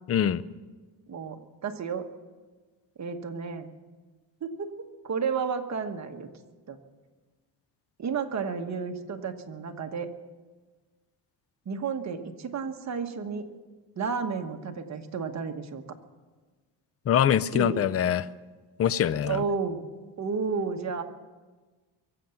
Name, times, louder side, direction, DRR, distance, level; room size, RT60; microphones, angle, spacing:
voice 1, 0.1-0.4 17.1-18.3 18.8-19.4, left 9 dB, 35° left, 17 dB, 0.5 m, -24 dB
voice 2, 1.1-2.1 3.0-3.7 4.4-6.3 6.7-6.8 8.0-10.1 11.7-13.5 14.0-15.8 17.5-17.8 19.3-19.8 20.2-21.0, right 5 dB, 40° right, 5 dB, 1.3 m, -32 dB
23.0 x 7.8 x 7.1 m, 1.3 s
cardioid pair, 125°, 44 cm